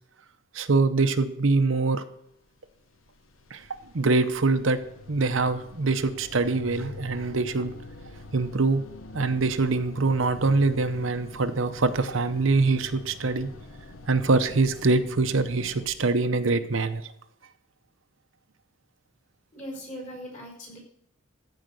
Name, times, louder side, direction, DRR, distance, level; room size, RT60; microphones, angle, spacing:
voice 1, 0.5-2.0 3.5-3.7 3.9-4.8 5.1-7.7 8.3-8.8 9.1-13.5 14.1-17.0, right 3 dB, 70° right, 9 dB, 0.8 m, -24 dB
sound 1, 2.7-15.9, left 3 dB, 75° left, 1.0 m, -45 dB
voice 2, 19.5-20.8, equal, 40° left, -1 dB, 4.8 m, -39 dB
14.5 x 5.0 x 6.4 m, 0.75 s
head